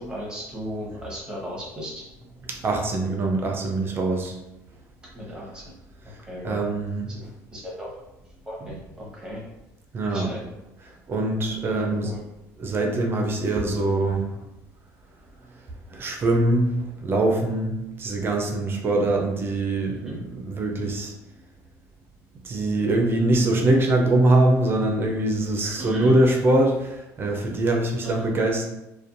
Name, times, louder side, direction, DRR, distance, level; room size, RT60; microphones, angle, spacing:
voice 1, 0.0-2.0 5.1-5.7 6.0-6.6 7.1-8.0 8.4-9.4 10.0-10.4 11.7-12.2 20.0-20.2 25.6-26.2 28.0-28.1, equal, 10° right, -4 dB, 1.0 m, -36 dB
voice 2, 2.5-4.4 6.4-7.1 8.7-8.8 9.9-10.3 11.1-12.1 12.6-14.3 15.9-16.7 17.0-21.1 22.4-28.6, right 2 dB, 35° right, 1 dB, 0.5 m, -23 dB
2.5 x 2.2 x 2.5 m, 0.90 s
supercardioid pair, 100°, 7 cm